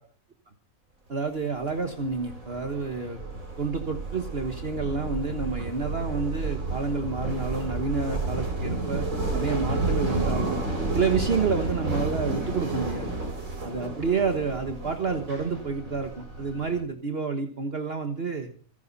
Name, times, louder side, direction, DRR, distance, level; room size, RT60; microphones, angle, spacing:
voice 1, 1.1-3.2 3.6-9.0 9.3-10.6 10.9-13.1 13.6-18.5, right 4 dB, 45° right, 6 dB, 1.6 m, -29 dB
sound 1, 1.6-16.8, right 2 dB, 70° right, 4.6 m, -31 dB
27.5 x 10.5 x 4.1 m, 0.41 s
omnidirectional pair, 1.5 m